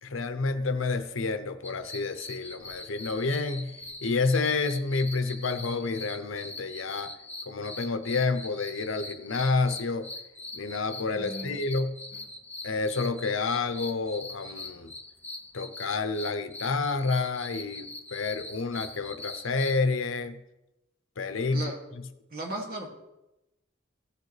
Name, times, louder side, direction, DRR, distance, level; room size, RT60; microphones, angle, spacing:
voice 1, 0.0-3.7 4.0-7.1 7.5-10.1 10.5-11.9 12.6-14.9 15.5-20.4 21.2-21.7, left 3 dB, 75° left, 10 dB, 0.7 m, -29 dB
sound 1, 1.6-19.8, left 2 dB, 10° left, 0.8 m, -42 dB
voice 2, 11.1-11.6 21.5-21.8 22.3-22.9, right 1 dB, 50° right, -2 dB, 2.3 m, -36 dB
16.0 x 6.7 x 3.3 m, 0.94 s
head